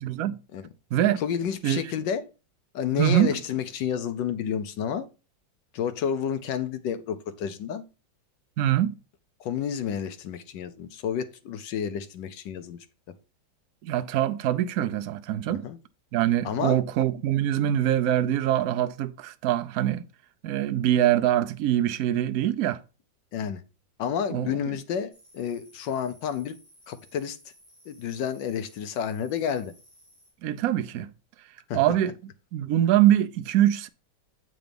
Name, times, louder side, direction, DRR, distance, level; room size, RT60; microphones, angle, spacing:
voice 1, 0.0-0.4 0.9-1.2 1.6-1.8 3.0-3.4 8.6-8.9 13.8-15.7 16.1-20.0 20.4-22.8 24.3-24.7 30.4-31.1 31.7-32.1 32.5-33.9, right 12 dB, 70° right, 0.9 m, -24 dB
voice 2, 1.2-2.2 2.7-5.1 5.7-7.8 9.4-12.8 15.5-15.8 16.4-16.8 23.3-23.6 24.0-26.5 26.9-27.4 27.9-29.7 31.7-31.8, left 8 dB, 75° left, 1.4 m, -30 dB
sound 1, 25.1-30.3, equal, 30° left, 4.4 m, -57 dB
7.7 x 4.0 x 5.1 m
omnidirectional pair, 2.0 m